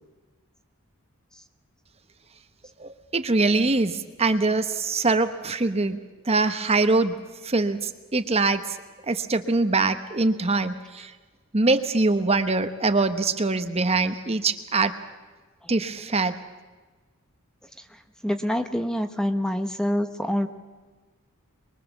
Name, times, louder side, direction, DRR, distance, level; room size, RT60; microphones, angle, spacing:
voice 1, 2.8-6.0 6.3-7.1 7.4-8.6 9.0-11.1 11.5-15.0 15.7-16.4, right 3 dB, 30° right, 9 dB, 1.0 m, -23 dB
voice 2, 18.2-20.5, equal, 5° left, 8 dB, 1.0 m, -26 dB
23.5 x 22.0 x 7.1 m, 1.3 s
head